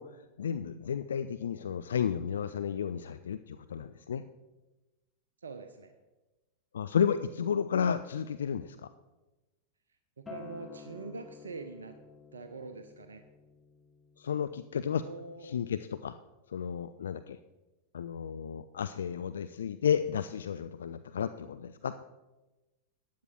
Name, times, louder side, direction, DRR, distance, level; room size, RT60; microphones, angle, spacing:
voice 1, 0.0-4.2 6.7-8.9 14.2-15.0 15.4-16.2 16.5-17.4 17.9-22.0, left 7 dB, 65° left, 12 dB, 0.4 m, -32 dB
voice 2, 5.4-5.9 10.2-12.0 12.3-13.2 15.0-15.5, right 4 dB, 70° right, 7 dB, 0.8 m, -44 dB
Acoustic guitar, 10.3-15.5, left 6 dB, 10° left, 1.2 m, -52 dB
14.5 x 10.5 x 4.4 m, 1.1 s
figure-of-eight pair, 90°, 0 cm